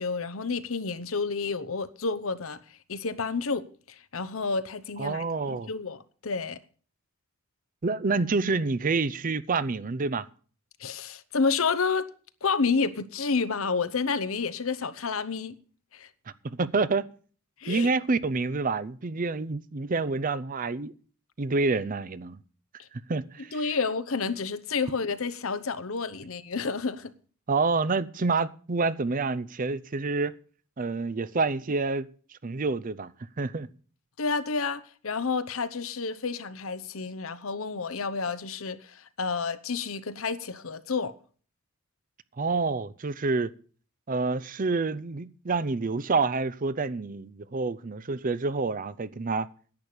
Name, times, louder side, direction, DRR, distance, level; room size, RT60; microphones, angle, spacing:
voice 1, 0.0-2.6 2.9-6.6 10.8-12.1 12.4-15.5 15.9-16.1 17.6-17.9 23.5-27.1 34.2-41.1, left 4 dB, 75° left, 0.9 m, -30 dB
voice 2, 5.0-5.7 7.8-10.3 16.4-17.1 17.7-20.9 21.4-22.4 22.9-23.8 27.5-30.3 30.8-32.1 32.4-33.1 33.4-33.7 42.4-43.5 44.1-49.5, right 3 dB, 40° right, 0.6 m, -28 dB
10.5 x 8.8 x 6.6 m
head